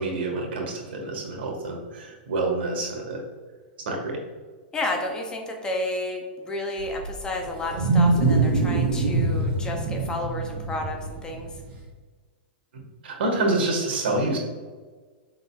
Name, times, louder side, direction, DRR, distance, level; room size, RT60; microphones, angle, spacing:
voice 1, 0.0-3.2 3.8-4.2 13.0-14.4, right 2 dB, 80° right, 0 dB, 1.4 m, -27 dB
voice 2, 4.7-11.5, left 1 dB, 15° left, 2 dB, 0.5 m, -31 dB
Wild animals, 6.8-11.8, right 3 dB, 30° right, 1.5 m, -24 dB
5.5 x 3.8 x 2.3 m, 1.4 s
supercardioid pair, 155°, 6 cm